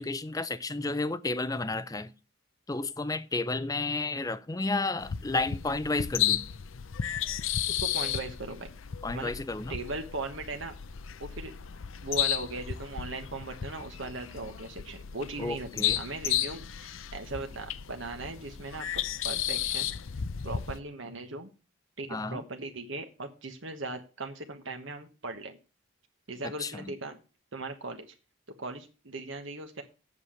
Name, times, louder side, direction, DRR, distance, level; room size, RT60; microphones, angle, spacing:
voice 1, 0.0-2.1 2.7-6.4 9.0-9.7 15.4-16.0 22.1-22.4 26.6-26.8, left 3 dB, 15° left, 0.5 m, -32 dB
sound 1, 5.0-20.8, left 10 dB, 75° left, 0.6 m, -34 dB
voice 2, 7.7-8.7 9.1-9.3 9.7-10.7 11.2-11.5 12.0-18.9 19.2-19.9 20.4-21.5 22.0-25.6 26.3-27.2 27.5-28.1 28.6-29.8, right 3 dB, 65° right, 1.3 m, -38 dB
8.2 x 7.3 x 6.4 m
head